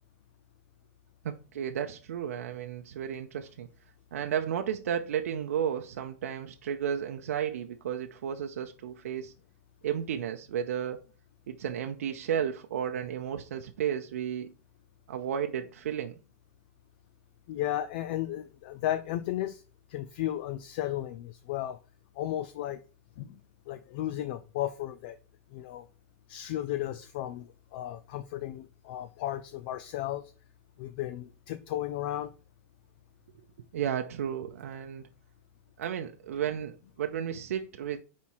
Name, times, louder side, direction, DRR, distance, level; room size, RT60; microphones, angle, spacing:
voice 1, 1.2-3.7 4.1-9.3 9.8-11.0 11.5-14.5 15.1-16.2 33.7-35.0 35.8-38.0, right 9 dB, 75° right, 0.7 m, -33 dB
voice 2, 17.5-19.6 19.9-21.8 22.2-22.8 23.2-23.4 23.7-25.2 25.5-25.8 26.3-30.3 30.8-32.3, left 13 dB, 40° left, 0.4 m, -34 dB
5.6 x 4.2 x 4.6 m
supercardioid pair, 170°, 8 cm